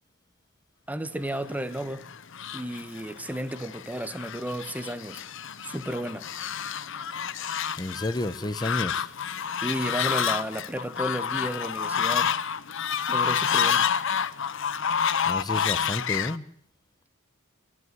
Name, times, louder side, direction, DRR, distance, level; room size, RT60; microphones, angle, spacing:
voice 1, 0.9-2.0 2.5-5.2 5.6-6.3 9.6-12.4 13.1-13.9, right 1 dB, 5° right, 1.3 m, -33 dB
Fowl, 1.5-16.4, left 7 dB, 60° left, 0.9 m, -29 dB
voice 2, 7.8-9.1 15.3-16.5, left 1 dB, 20° left, 1.0 m, -31 dB
29.0 x 11.5 x 9.7 m
head